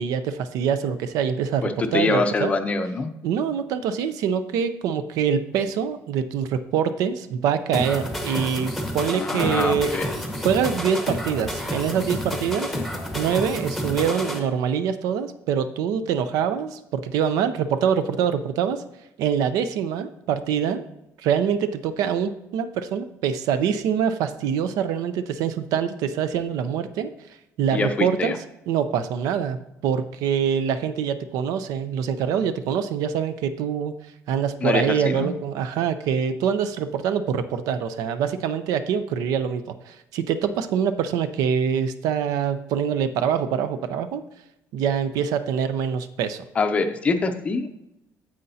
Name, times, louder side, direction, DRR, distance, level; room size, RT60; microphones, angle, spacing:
voice 1, 0.0-2.5 3.2-12.7 13.1-18.8 19.2-20.8 21.2-27.1 27.6-28.3 28.7-29.6 29.8-33.9 34.3-44.2 44.7-46.4, right 7 dB, 75° right, 11 dB, 0.6 m, -25 dB
voice 2, 1.6-3.1 9.1-10.1 27.7-28.4 34.6-35.3 46.6-47.7, left 3 dB, 20° left, 8 dB, 0.5 m, -24 dB
sound 1, 7.7-14.4, equal, ahead, 0.9 m, -30 dB
9.5 x 7.7 x 2.8 m, 0.88 s
cardioid pair, 175°, 6 cm